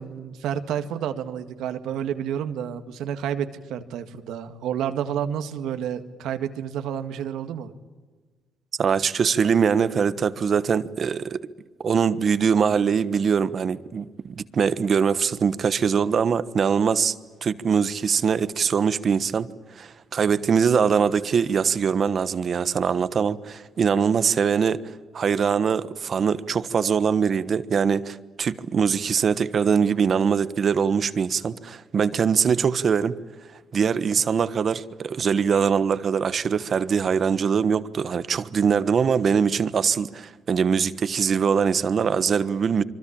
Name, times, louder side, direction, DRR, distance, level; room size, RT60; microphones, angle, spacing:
voice 1, 0.0-7.7, right 9 dB, 85° right, 1.9 m, -30 dB
voice 2, 8.8-11.4 11.8-17.1 17.4-19.5 19.7-24.8 25.1-33.2 33.7-42.8, right 6 dB, 50° right, 1.2 m, -22 dB
26.5 x 24.5 x 8.7 m
cardioid pair, 90°, 0 cm